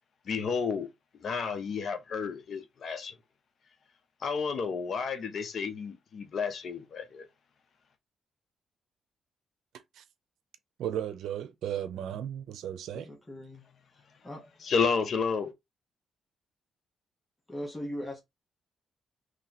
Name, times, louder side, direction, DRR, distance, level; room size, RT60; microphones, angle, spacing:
voice 1, 0.2-0.9 1.2-3.1 4.2-7.3 14.6-15.5, left 5 dB, 55° left, 0.9 m, -31 dB
voice 2, 10.8-13.1, right 10 dB, 85° right, 0.6 m, -35 dB
voice 3, 12.9-14.7 17.5-18.2, equal, 10° left, 1.2 m, -41 dB
3.1 x 2.9 x 4.1 m
cardioid pair, 100°, 0 cm